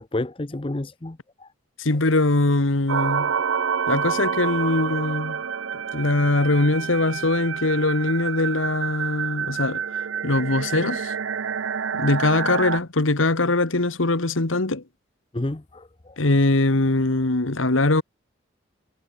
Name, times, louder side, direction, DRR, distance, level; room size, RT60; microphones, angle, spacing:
voice 1, 0.0-1.5 15.3-16.2, left 1 dB, 25° left, 0.7 m, -30 dB
voice 2, 1.8-3.3 3.9-5.4 5.9-9.8 10.2-11.1 11.9-14.8 16.2-18.0, left 2 dB, 90° left, 1.7 m, -22 dB
sound 1, 2.9-12.8, right 6 dB, 85° right, 0.7 m, -28 dB
head